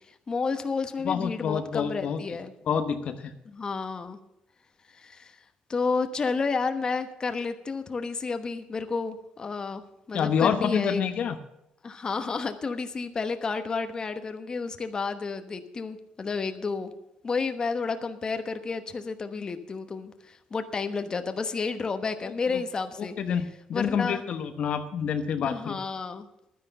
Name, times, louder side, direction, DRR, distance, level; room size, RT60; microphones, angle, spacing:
voice 1, 0.1-2.5 3.4-4.2 4.9-5.4 5.7-11.0 11.8-16.9 17.2-23.2 23.7-24.2 25.4-26.3, left 4 dB, 30° left, 9 dB, 1.1 m, -31 dB
voice 2, 1.0-2.2 2.7-3.3 10.1-11.4 23.0-25.8, left 7 dB, 55° left, 8 dB, 1.0 m, -27 dB
11.5 x 9.9 x 6.6 m, 0.84 s
cardioid pair, 100°, 2 cm